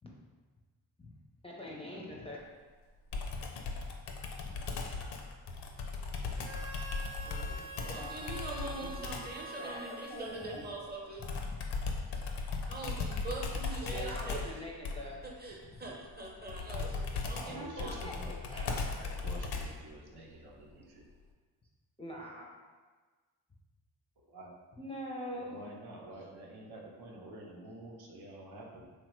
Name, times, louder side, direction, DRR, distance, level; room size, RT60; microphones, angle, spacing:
voice 1, 1.4-2.4 4.5-4.6 7.2-9.2 9.6-10.8 11.3-11.6 13.9-15.2 15.6-15.9 16.7-16.9 17.5-18.7 22.0-22.5 24.7-25.7 28.8-28.9, left 1 dB, 15° left, -3 dB, 0.5 m, -44 dB
Computer keyboard, 3.1-9.4 11.2-19.9, left 4 dB, 70° left, 0.5 m, -37 dB
Harmonica, 6.3-11.2, right 2 dB, 85° right, 1.0 m, -46 dB
voice 2, 7.9-11.3 12.7-14.4 15.4-18.0, right 2 dB, 25° right, -2 dB, 0.7 m, -43 dB
voice 3, 17.4-21.1 24.2-24.6 25.3-28.9, right 1 dB, 65° right, -2 dB, 0.7 m, -49 dB
3.0 x 2.1 x 3.1 m, 1.4 s
cardioid pair, 50°, 42 cm